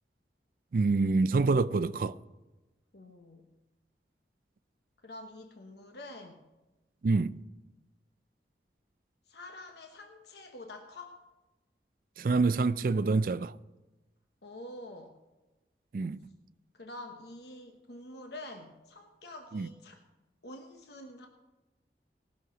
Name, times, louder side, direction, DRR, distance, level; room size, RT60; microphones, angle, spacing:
voice 1, 0.7-2.2 7.0-7.3 12.2-13.5 15.9-16.2 19.5-19.7, right 3 dB, 50° right, 0.4 m, -26 dB
voice 2, 2.9-3.4 5.0-6.4 9.3-11.2 14.4-15.1 16.7-20.0 20.4-21.3, left 1 dB, 75° left, 1.1 m, -47 dB
18.5 x 6.4 x 6.0 m
head